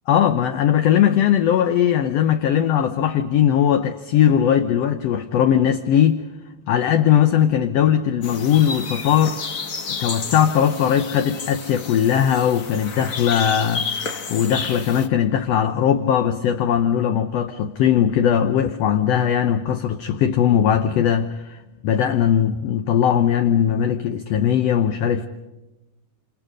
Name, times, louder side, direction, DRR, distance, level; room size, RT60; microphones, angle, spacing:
voice 1, 0.1-6.2 6.7-9.4 9.9-25.3, left 9 dB, 65° left, 1.7 m, -19 dB
sound 1, 8.2-15.1, left 5 dB, 85° left, 0.7 m, -31 dB
28.5 x 27.0 x 5.1 m
omnidirectional pair, 3.6 m